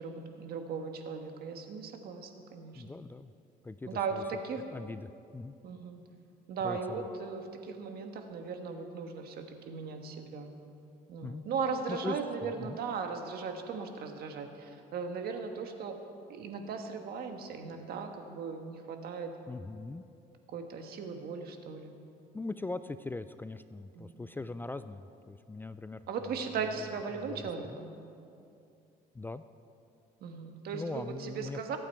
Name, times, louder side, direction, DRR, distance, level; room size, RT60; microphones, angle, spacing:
voice 1, 0.0-2.8 3.9-4.6 5.6-6.0 6.5-10.5 11.1-16.0 16.3-19.3 20.5-21.9 23.9-24.1 26.1-27.9 30.2-31.8, right 5 dB, 65° right, 5 dB, 1.4 m, -38 dB
voice 2, 2.7-3.3 3.6-4.2 4.6-5.6 6.6-7.0 11.2-11.4 11.9-12.8 19.5-20.0 22.3-26.3 27.3-27.8 29.1-29.4 30.7-31.8, left 3 dB, 10° left, 12 dB, 0.3 m, -41 dB
23.0 x 8.7 x 4.5 m, 2.6 s
cardioid pair, 110°, 17 cm